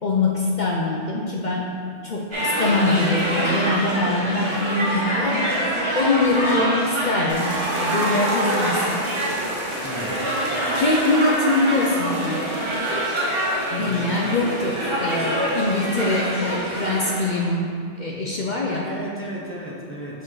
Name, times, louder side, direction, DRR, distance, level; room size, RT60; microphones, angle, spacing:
voice 1, 0.0-1.7 2.0-5.6 5.9-9.1 10.7-12.4 13.7-18.9, left 2 dB, 55° left, -1 dB, 0.5 m, -23 dB
sound 1, 2.3-17.5, equal, 25° right, 1.0 m, -26 dB
sound 2, 7.3-16.0, right 2 dB, 65° right, 1.1 m, -33 dB
voice 2, 9.8-10.3 13.8-14.4 18.7-20.2, equal, 15° left, -4 dB, 0.7 m, -34 dB
5.9 x 5.1 x 3.9 m, 2.2 s
omnidirectional pair, 1.3 m